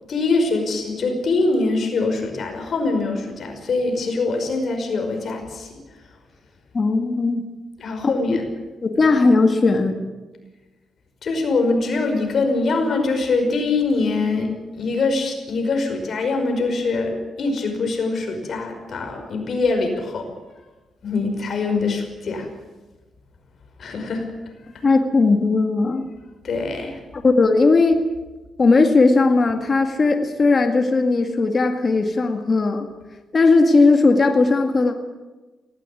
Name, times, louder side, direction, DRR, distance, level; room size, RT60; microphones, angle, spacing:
voice 1, 0.1-5.7 7.8-8.4 11.2-20.3 21.0-22.5 23.8-24.3 26.4-27.0, left 3 dB, 55° left, 4 dB, 5.3 m, -23 dB
voice 2, 6.7-7.5 8.0-8.4 8.8-10.0 24.8-26.1 27.1-28.1 28.6-32.9 33.3-35.0, left 3 dB, 35° left, 4 dB, 2.1 m, -17 dB
18.5 x 17.5 x 9.8 m, 1.2 s
cardioid pair, 120°, 0 cm